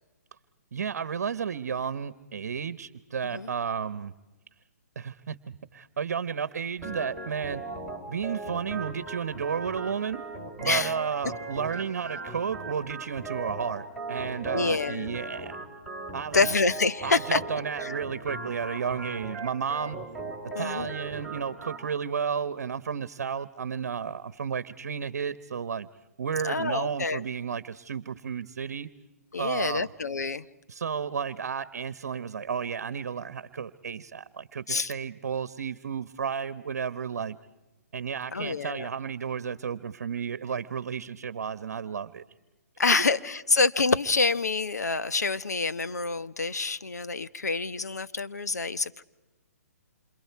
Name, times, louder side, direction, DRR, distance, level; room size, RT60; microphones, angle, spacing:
voice 1, 0.7-4.1 4.9-7.6 8.1-10.2 10.6-15.6 16.1-16.5 17.0-20.0 20.4-25.9 26.2-28.9 29.4-29.9 30.7-37.4 37.9-42.2 42.9-43.1, right 7 dB, 65° right, 15 dB, 1.1 m, -32 dB
Organ, 6.8-21.8, right 3 dB, 5° left, 5.2 m, -38 dB
voice 2, 14.5-15.2 16.3-17.4 17.8-17.9 20.5-20.9 26.4-27.2 29.3-30.4 34.7-34.9 38.3-38.9 42.8-49.0, left 4 dB, 90° left, 12 dB, 1.2 m, -27 dB
29.0 x 27.5 x 4.7 m, 1.1 s
hypercardioid pair, 140°, 9 cm